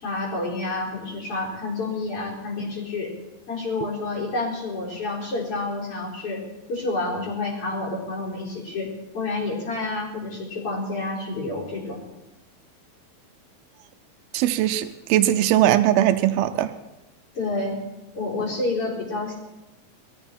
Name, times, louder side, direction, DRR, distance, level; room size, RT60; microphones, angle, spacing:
voice 1, 0.0-3.1 3.5-6.4 6.7-12.0 17.3-17.8 18.1-19.3, left 2 dB, 40° left, -3 dB, 5.0 m, -29 dB
voice 2, 14.3-16.7, right 12 dB, 90° right, 9 dB, 2.6 m, -20 dB
20.5 x 14.5 x 4.5 m, 0.98 s
omnidirectional pair, 4.3 m